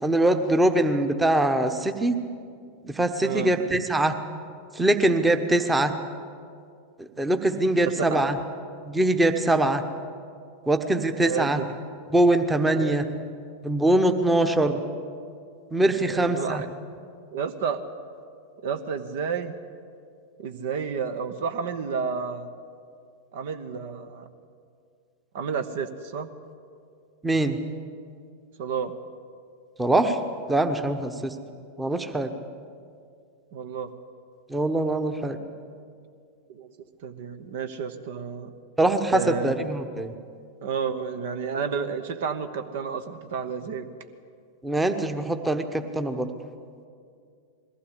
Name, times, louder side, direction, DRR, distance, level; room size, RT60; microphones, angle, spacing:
voice 1, 0.0-2.2 2.8-4.1 4.7-6.0 7.0-8.4 8.8-9.8 10.7-11.6 12.1-13.0 13.6-14.8 15.7-16.6 27.2-27.6 29.8-30.2 30.5-31.3 31.8-32.3 34.5-35.4 38.8-40.1 44.6-46.3, right 1 dB, 10° right, 7 dB, 1.2 m, -23 dB
voice 2, 3.2-3.5 7.8-8.2 11.2-11.7 12.7-13.0 15.8-16.7 17.3-17.8 18.6-19.5 20.4-22.5 23.3-24.3 25.3-26.3 28.6-29.0 33.5-33.9 36.5-36.7 37.0-38.5 39.1-39.5 40.6-43.9, right 6 dB, 55° right, 9 dB, 1.1 m, -31 dB
21.5 x 15.5 x 8.3 m, 2.3 s
figure-of-eight pair, 90°, 0 cm